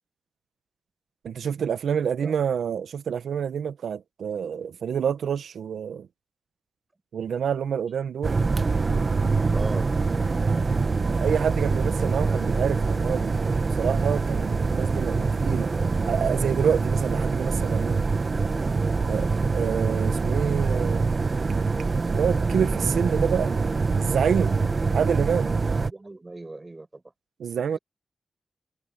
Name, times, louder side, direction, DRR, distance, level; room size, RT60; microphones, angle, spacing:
voice 1, 1.2-6.1 7.1-8.4 11.2-15.7 16.1-18.0 19.1-21.1 22.1-23.5 24.0-24.6 24.9-25.5 27.4-27.8, right 7 dB, 90° right, 1.0 m, -27 dB
sound 1, 8.2-25.9, right 4 dB, 40° right, 1.3 m, -24 dB
voice 2, 9.5-9.9 25.7-27.0 27.7-27.8, right 2 dB, 25° right, 6.3 m, -39 dB
wide cardioid pair, 105°, 0 cm